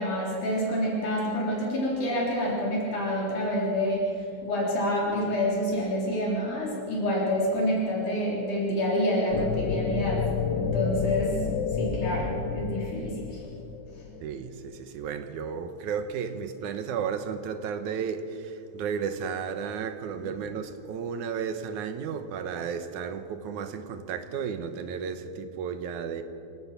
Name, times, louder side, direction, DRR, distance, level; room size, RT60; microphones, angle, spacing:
voice 1, 0.0-4.1 4.4-11.4 11.8-13.4, equal, 70° left, -4 dB, 5.3 m, -28 dB
sound 1, 9.3-14.4, left 6 dB, 90° left, 1.0 m, -30 dB
voice 2, 14.2-26.2, right 6 dB, 75° right, 9 dB, 2.5 m, -33 dB
26.5 x 17.5 x 6.0 m, 2.6 s
omnidirectional pair, 3.7 m